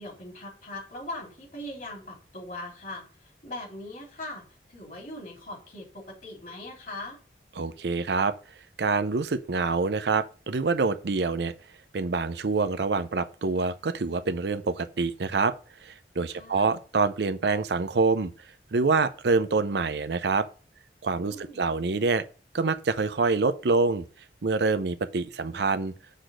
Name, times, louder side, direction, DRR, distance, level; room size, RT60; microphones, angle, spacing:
voice 1, 0.0-3.0 3.4-7.2 16.3-16.8 21.3-21.7, left 1 dB, 50° left, 3.3 m, -40 dB
voice 2, 7.6-8.3 8.8-11.5 11.9-15.5 15.8-18.3 18.7-20.5 21.0-22.2 22.5-24.0 24.4-25.9, right 4 dB, 75° right, 0.6 m, -26 dB
6.5 x 4.0 x 6.3 m
head